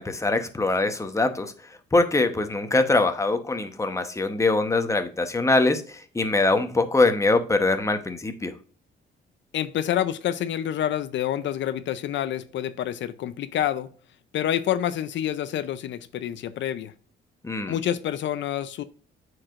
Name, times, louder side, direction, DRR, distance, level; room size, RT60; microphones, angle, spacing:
voice 1, 0.0-1.5 1.9-8.5 17.4-17.8, left 2 dB, 15° left, 1.0 m, -23 dB
voice 2, 9.5-13.9 14.3-16.9 17.7-18.8, left 11 dB, 70° left, 0.5 m, -27 dB
8.5 x 4.9 x 2.5 m
cardioid pair, 90°, 20 cm